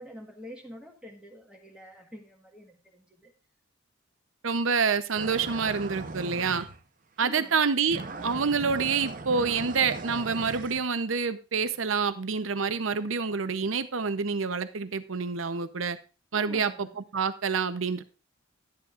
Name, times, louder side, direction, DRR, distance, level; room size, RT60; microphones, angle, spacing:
voice 1, 0.0-3.3 7.2-7.6 16.3-17.0, equal, 5° right, 1.4 m, -46 dB
voice 2, 4.4-6.7 7.2-16.0 16.3-16.7 17.1-18.0, right 5 dB, 80° right, 0.7 m, -27 dB
sound 1, 5.2-6.8 7.3-7.6 7.9-10.9, right 3 dB, 45° right, 0.9 m, -38 dB
11.5 x 10.5 x 2.5 m
head